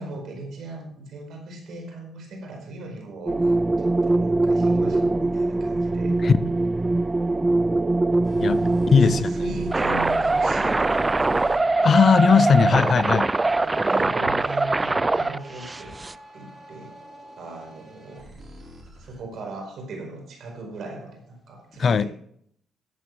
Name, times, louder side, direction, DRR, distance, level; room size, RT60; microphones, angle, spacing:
voice 1, 0.0-6.2 8.5-12.0 13.6-16.9 17.4-18.3 19.0-22.1, right 2 dB, 65° right, 4.8 m, -39 dB
sound 1, 3.3-16.1, right 2 dB, 20° right, 0.4 m, -22 dB
sound 2, 8.2-19.2, equal, 35° right, 5.6 m, -43 dB
voice 2, 8.9-9.3 11.8-13.3 21.8-22.0, left 6 dB, 45° left, 0.6 m, -18 dB
13.5 x 8.4 x 4.7 m
cardioid pair, 90°, 0 cm